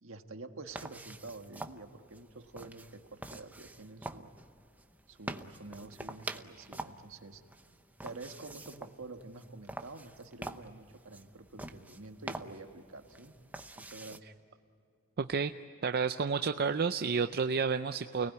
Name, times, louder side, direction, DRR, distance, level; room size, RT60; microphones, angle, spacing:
voice 1, 0.0-4.3 5.1-7.4 8.0-13.3 13.8-14.3, right 3 dB, 70° right, 5 dB, 1.7 m, -48 dB
sound 1, 0.7-14.2, right 2 dB, 10° right, 0.8 m, -46 dB
voice 2, 15.2-15.5 15.8-18.3, right 5 dB, 45° right, 8 dB, 0.5 m, -30 dB
29.5 x 19.0 x 9.6 m, 2.6 s
head